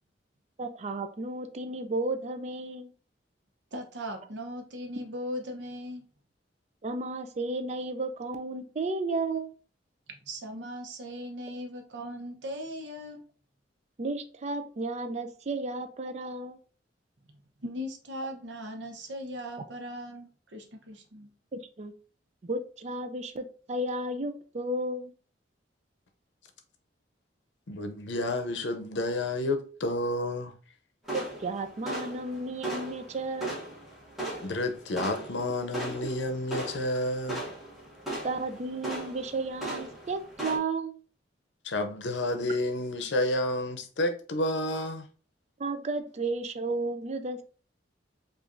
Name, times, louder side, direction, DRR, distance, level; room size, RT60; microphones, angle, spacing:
voice 1, 0.6-2.9 6.8-9.5 14.0-16.6 21.5-21.9 22.4-25.1 31.1-33.6 38.2-41.0 45.6-47.4, right 2 dB, 40° right, 0.4 m, -33 dB
voice 2, 3.7-6.1 10.3-13.2 17.6-21.3, equal, 80° right, 0.8 m, -38 dB
voice 3, 27.7-30.5 34.4-37.5 41.6-45.1, left 1 dB, 80° left, 0.6 m, -30 dB
sound 1, 31.0-40.6, right 1 dB, ahead, 1.3 m, -38 dB
4.9 x 2.5 x 2.5 m
head